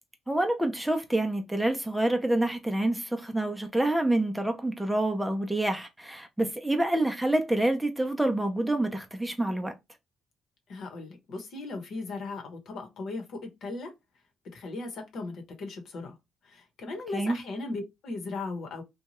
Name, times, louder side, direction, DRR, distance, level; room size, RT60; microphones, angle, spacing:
voice 1, 0.3-9.7 17.1-17.4, right 1 dB, 5° right, 0.6 m, -27 dB
voice 2, 10.7-13.9 14.5-16.2 16.4-18.8, left 3 dB, 70° left, 1.0 m, -37 dB
2.8 x 2.3 x 2.9 m
cardioid pair, 90°, 0 cm